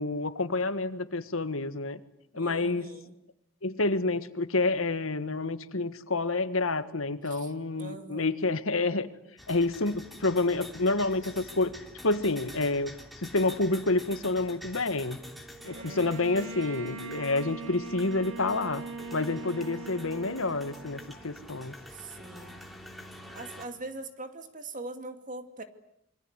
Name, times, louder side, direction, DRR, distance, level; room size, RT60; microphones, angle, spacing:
voice 1, 0.0-2.0 2.3-2.9 3.6-9.1 9.5-11.7 12.0-12.9 13.2-15.2 15.6-18.8 19.1-21.7, left 2 dB, 85° left, 12 dB, 1.7 m, -28 dB
voice 2, 2.3-3.2 7.2-8.3 15.7-16.3 21.9-22.6 23.3-25.6, right 2 dB, 40° right, 8 dB, 2.4 m, -42 dB
sound 1, 9.4-23.7, left 1 dB, ahead, 3.0 m, -47 dB
Bowed string instrument, 15.6-21.4, right 3 dB, 75° right, 2.3 m, -41 dB
27.0 x 24.0 x 8.1 m, 0.76 s
head